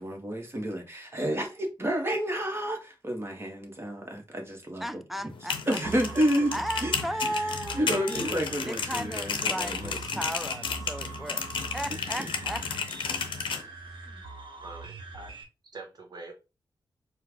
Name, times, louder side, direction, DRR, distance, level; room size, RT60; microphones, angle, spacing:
voice 1, 0.0-5.0 5.7-6.5 6.8-6.9 7.7-10.2 12.1-12.3 13.1-13.2, equal, 30° right, 1.3 m, -30 dB
voice 2, 4.8-6.1 6.5-11.5 11.7-12.7 13.9-14.2, equal, ahead, 0.4 m, -36 dB
sound 1, 5.3-13.6, left 6 dB, 80° left, 0.6 m, -33 dB
sound 2, 5.8-15.4, right 3 dB, 75° right, 0.9 m, -43 dB
voice 3, 14.6-15.4 15.7-16.4, right 3 dB, 55° right, 1.1 m, -44 dB
4.5 x 2.3 x 3.5 m
cardioid pair, 70°, 8 cm